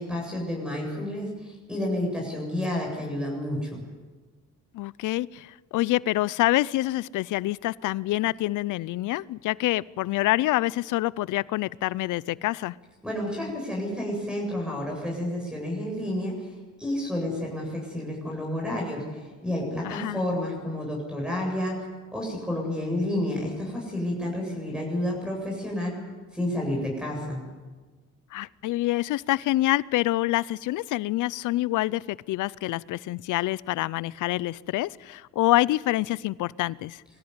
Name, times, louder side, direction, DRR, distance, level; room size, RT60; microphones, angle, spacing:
voice 1, 0.0-3.8 13.0-16.5 16.8-21.8 22.1-26.0 26.3-27.4, left 1 dB, 5° right, -1 dB, 8.0 m, -30 dB
voice 2, 4.7-12.7 19.8-20.2 28.3-37.0, left 17 dB, 80° left, 21 dB, 0.6 m, -26 dB
23.0 x 15.0 x 9.7 m, 1.3 s
cardioid pair, 90°, 30 cm